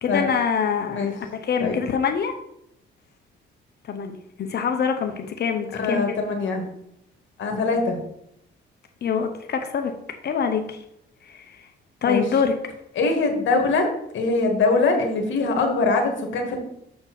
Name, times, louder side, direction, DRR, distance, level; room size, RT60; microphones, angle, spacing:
voice 1, 0.0-2.3 3.9-6.1 9.0-9.9 10.2-10.8 11.3-11.7 12.0-12.5, left 6 dB, 55° left, 6 dB, 0.8 m, -25 dB
voice 2, 5.7-6.7 7.4-8.0 12.0-12.2 13.0-13.9 14.1-16.6, left 3 dB, 70° left, 3 dB, 1.8 m, -22 dB
7.0 x 4.3 x 6.0 m, 0.78 s
cardioid pair, 90°, 20 cm